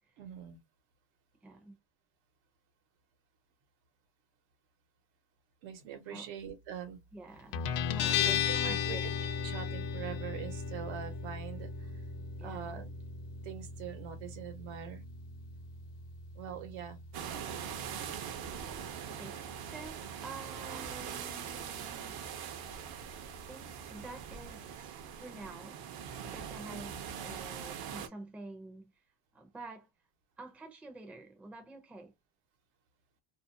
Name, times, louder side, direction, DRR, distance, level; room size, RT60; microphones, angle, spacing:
voice 1, 0.2-0.6 5.6-7.0 8.2-9.0 9.4-12.0 12.4-12.9 13.4-15.0 16.3-17.0, right 8 dB, 80° right, 1.0 m, -43 dB
voice 2, 1.4-1.7 6.1-6.3 7.1-9.0 12.4-12.8 19.1-22.2 23.5-28.9 29.3-29.9 30.4-32.1, right 2 dB, 5° right, 0.4 m, -49 dB
Guitar, 7.5-24.7, left 7 dB, 50° left, 0.5 m, -38 dB
sound 1, 17.1-28.1, right 8 dB, 55° right, 0.6 m, -42 dB
2.6 x 2.1 x 2.5 m
cardioid pair, 115°, 45 cm